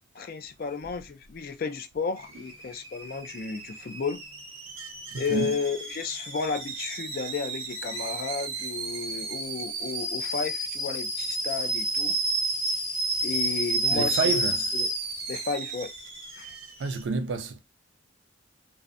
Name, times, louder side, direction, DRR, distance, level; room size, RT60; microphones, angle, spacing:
voice 1, 0.1-4.2 5.1-12.2 13.2-14.9 15.3-15.9 16.4-16.5, left 4 dB, 45° left, 0.4 m, -33 dB
Alarm / Boiling, 2.2-17.0, right 2 dB, 90° right, 0.7 m, -31 dB
voice 2, 13.9-14.6 16.8-17.6, right 4 dB, 60° right, 0.4 m, -28 dB
2.5 x 2.0 x 2.4 m
head